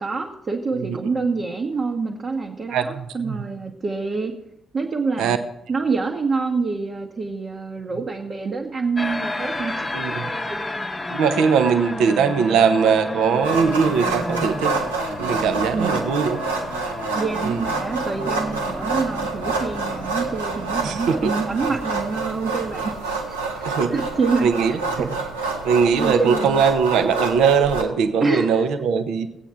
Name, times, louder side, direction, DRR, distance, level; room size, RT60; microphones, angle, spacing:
voice 1, 0.0-4.3 4.7-5.4 5.7-9.9 10.3-10.8 15.7-16.0 17.1-25.1 25.4-25.6 26.0-26.6 28.2-28.6, right 4 dB, 40° right, -1 dB, 1.0 m, -27 dB
voice 2, 2.7-3.4 5.2-5.4 9.9-10.3 11.1-14.8 15.2-16.4 17.4-17.6 20.8-21.3 23.6-23.9 24.4-25.2 25.6-29.3, right 6 dB, 60° right, 9 dB, 0.7 m, -20 dB
sound 1, 9.0-23.0, left 2 dB, 15° left, 0.9 m, -32 dB
sound 2, 13.4-27.8, right 3 dB, 80° right, 1.0 m, -27 dB
18.0 x 8.2 x 3.4 m, 0.81 s
figure-of-eight pair, 40°, 0 cm